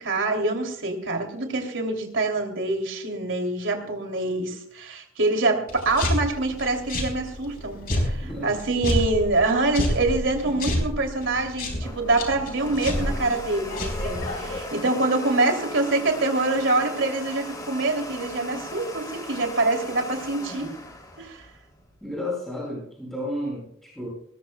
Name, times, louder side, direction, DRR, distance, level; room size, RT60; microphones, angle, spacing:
voice 1, 0.0-20.7 21.2-21.4, right 2 dB, 65° right, 4 dB, 3.0 m, -25 dB
sound 1, 5.7-14.6, left 1 dB, 45° left, 4.4 m, -29 dB
Domestic sounds home sounds, 11.8-22.1, left 1 dB, 20° left, 3.0 m, -38 dB
voice 2, 22.0-24.1, left 1 dB, ahead, -6 dB, 7.7 m, -32 dB
21.0 x 20.0 x 2.3 m, 0.66 s
head